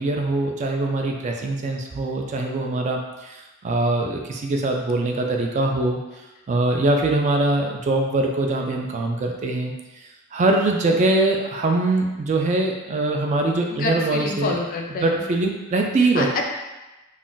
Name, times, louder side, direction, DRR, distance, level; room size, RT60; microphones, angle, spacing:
voice 1, 0.0-6.0 6.5-9.7 10.3-14.6 15.0-16.3, right 2 dB, 35° right, 2 dB, 0.3 m, -22 dB
voice 2, 13.7-15.2 16.1-16.5, left 3 dB, 45° left, 2 dB, 0.3 m, -27 dB
2.4 x 2.1 x 3.8 m, 1.1 s
head